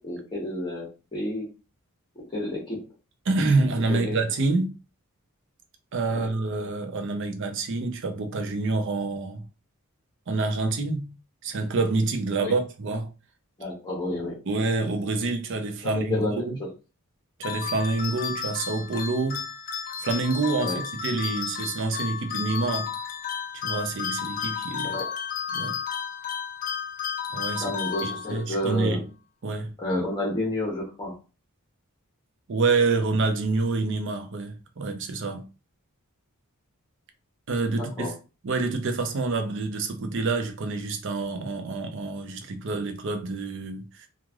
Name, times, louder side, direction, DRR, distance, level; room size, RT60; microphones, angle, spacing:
voice 1, 0.0-1.5 2.3-2.8 3.9-4.2 6.1-6.3 12.4-12.5 13.6-14.4 15.8-16.7 20.6-20.8 24.8-25.1 27.6-29.0 29.8-31.1 37.8-38.1, left 1 dB, 20° left, 0.9 m, -30 dB
voice 2, 3.3-4.7 5.9-9.4 10.3-11.1 11.4-13.1 14.5-16.6 17.4-19.5 20.0-22.9 23.5-25.0 25.5-25.7 27.3-27.8 28.0-29.0 29.4-29.7 32.5-35.4 37.5-38.1 38.4-44.1, right 3 dB, 55° right, 0.5 m, -27 dB
sound 1, 17.4-28.6, left 7 dB, 40° left, 0.4 m, -32 dB
3.1 x 2.4 x 2.3 m
head